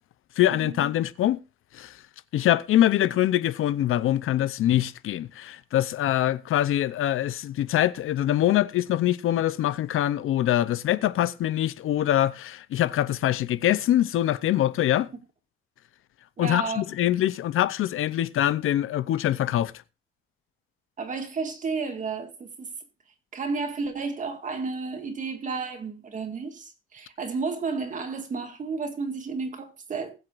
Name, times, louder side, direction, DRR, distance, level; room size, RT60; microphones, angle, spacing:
voice 1, 0.4-1.4 1.7-1.9 2.3-15.1 16.4-19.7, left 12 dB, 80° left, 0.7 m, -24 dB
voice 2, 16.4-16.8 21.0-22.7 23.3-30.2, right 4 dB, 40° right, 1.9 m, -32 dB
20.5 x 7.8 x 2.5 m
wide cardioid pair, 175°, 21 cm